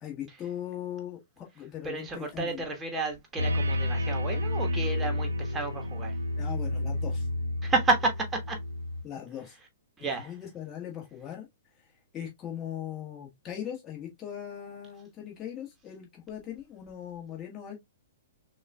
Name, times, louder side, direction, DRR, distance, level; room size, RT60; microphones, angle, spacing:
voice 1, 0.0-2.6 6.3-7.3 9.0-9.6 10.0-11.5 12.1-17.9, left 10 dB, 20° left, 1.6 m, -39 dB
voice 2, 1.8-6.2 7.6-8.6 10.0-10.3, right 3 dB, 10° right, 1.2 m, -31 dB
sound 1, 3.4-9.0, left 1 dB, 70° right, 0.7 m, -30 dB
6.1 x 2.5 x 2.2 m
figure-of-eight pair, 115°, 0 cm